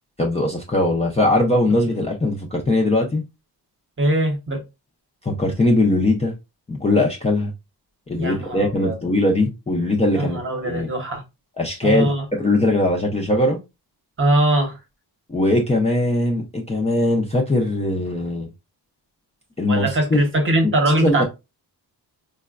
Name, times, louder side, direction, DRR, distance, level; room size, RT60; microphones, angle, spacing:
voice 1, 0.2-3.2 5.2-6.3 6.7-7.5 8.1-10.4 10.6-10.9 11.6-13.6 15.3-18.5 19.6-20.2 21.0-21.2, left 1 dB, 15° left, 0.4 m, -20 dB
voice 2, 4.0-4.6 8.2-8.9 10.1-11.2 11.8-12.2 14.2-14.7 19.7-21.2, right 1 dB, 30° right, 0.8 m, -21 dB
4.7 x 2.1 x 2.3 m
wide cardioid pair, 175°, 41 cm